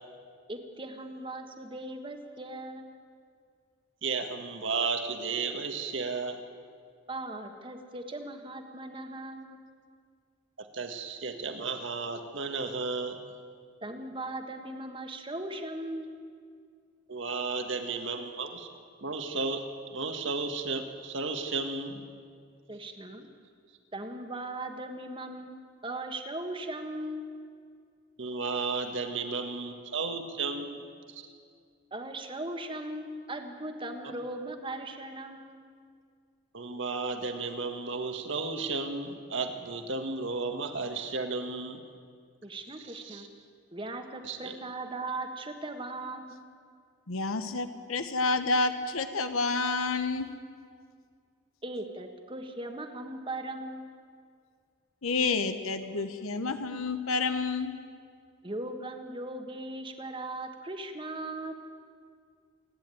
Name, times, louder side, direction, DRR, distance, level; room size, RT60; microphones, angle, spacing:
voice 1, 0.5-2.9 7.1-9.6 13.8-16.2 22.7-23.3 23.9-25.6 25.8-27.2 31.9-35.6 42.4-43.3 43.7-46.5 51.6-53.9 55.9-56.0 58.4-61.5, right 2 dB, 25° right, 6 dB, 1.5 m, -38 dB
voice 2, 4.0-6.4 10.6-13.2 17.1-18.7 19.0-22.0 28.2-30.8 31.1-31.2 36.5-41.8 42.9-43.3 44.2-44.6, right 4 dB, 65° right, 6 dB, 1.7 m, -33 dB
voice 3, 47.1-50.3 55.0-57.8, left 3 dB, 90° left, 9 dB, 1.1 m, -29 dB
28.0 x 10.5 x 9.1 m, 2.2 s
head